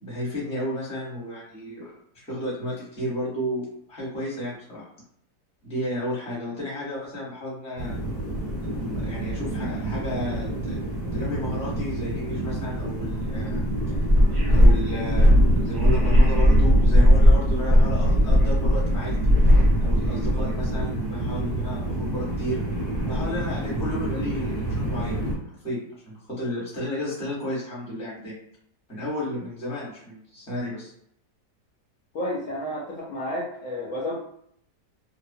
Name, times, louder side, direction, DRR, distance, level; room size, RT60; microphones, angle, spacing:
voice 1, 0.0-1.9 2.2-4.9 5.6-8.0 8.7-10.8 11.1-13.6 14.5-19.3 19.8-22.6 23.1-25.2 25.5-28.4 28.9-30.9, equal, 5° left, -7 dB, 0.8 m, -32 dB
sound 1, 7.8-25.3, equal, 20° right, 1.0 m, -21 dB
voice 2, 32.1-34.2, left 1 dB, 60° left, -6 dB, 0.9 m, -31 dB
2.8 x 2.0 x 2.7 m, 0.69 s
omnidirectional pair, 1.8 m